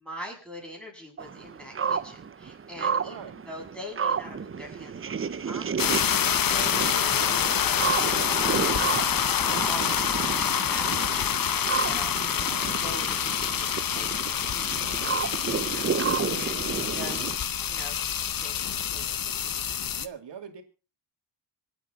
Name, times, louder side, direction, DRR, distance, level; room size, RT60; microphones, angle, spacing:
voice 1, 0.0-3.2 3.5-12.4 12.8-15.2 15.4-17.2 17.5-19.2, left 1 dB, ahead, 0 dB, 7.8 m, -44 dB
Raven in Teller AK, 1.2-17.4, right 6 dB, 30° right, 0.7 m, -32 dB
voice 2, 2.9-3.5 12.3-12.8 16.8-17.1 20.0-20.6, right 7 dB, 65° right, 5 dB, 3.0 m, -43 dB
sound 1, 5.8-20.1, left 8 dB, 45° left, 0.9 m, -27 dB
26.5 x 9.2 x 4.0 m, 0.34 s
cardioid pair, 115°, 46 cm